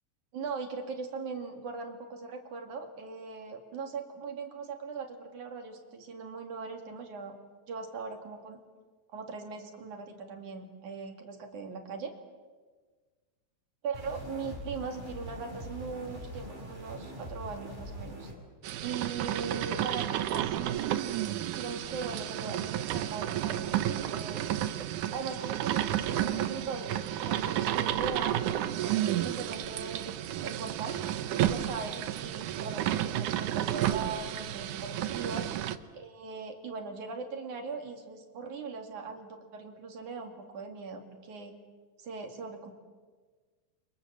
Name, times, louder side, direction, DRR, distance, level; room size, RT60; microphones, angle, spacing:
voice 1, 0.3-7.4 7.7-8.6 9.1-12.2 13.8-18.3 18.8-21.0 21.5-24.4 25.1-28.4 28.8-31.0 31.3-35.5 35.9-41.6 42.0-42.7, right 4 dB, 50° right, 4 dB, 3.4 m, -40 dB
sound 1, 13.9-18.3, equal, 10° right, 4.8 m, -43 dB
sound 2, 18.6-35.8, right 12 dB, 90° right, 1.7 m, -31 dB
30.0 x 25.0 x 7.5 m, 1.4 s
omnidirectional pair, 4.9 m